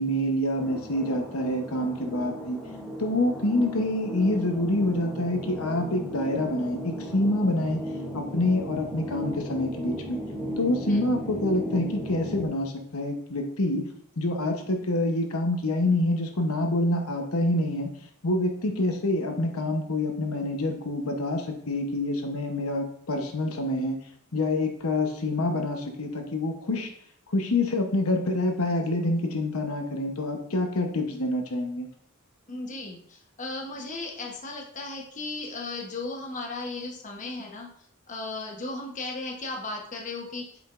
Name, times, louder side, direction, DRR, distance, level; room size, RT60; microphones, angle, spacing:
voice 1, 0.0-2.6 3.0-7.8 8.1-10.2 10.6-13.8 14.2-17.9 18.2-24.0 24.3-26.9 27.3-31.9, left 1 dB, 90° left, 3 dB, 1.0 m, -26 dB
sound 1, 0.6-12.5, equal, 5° right, 0.9 m, -36 dB
voice 2, 32.5-37.7 38.1-40.5, left 3 dB, 35° left, 0 dB, 1.1 m, -36 dB
8.2 x 5.0 x 2.5 m, 0.64 s
head